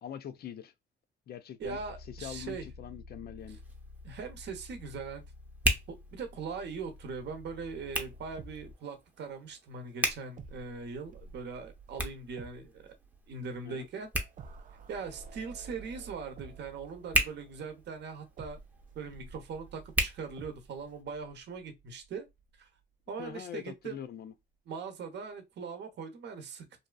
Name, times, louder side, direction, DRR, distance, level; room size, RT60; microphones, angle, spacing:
voice 1, 0.0-0.7 1.3-3.6 13.6-13.9 23.2-24.3, left 9 dB, 50° left, 0.4 m, -43 dB
sound 1, 1.6-8.7, left 2 dB, 75° left, 0.8 m, -50 dB
voice 2, 1.6-2.6 4.0-5.2 5.9-12.8 13.3-14.1 14.9-18.6 18.9-22.3 22.6-22.7 23.1-24.0 24.7-26.9, right 5 dB, 60° right, 0.7 m, -41 dB
Hands, 3.4-21.0, right 1 dB, 10° right, 0.7 m, -38 dB
sound 2, 7.5-9.3 9.6-9.7 10.4-22.8 23.1-23.3, right 5 dB, 40° right, 0.4 m, -52 dB
2.7 x 2.3 x 2.2 m
cardioid pair, 90°, 20 cm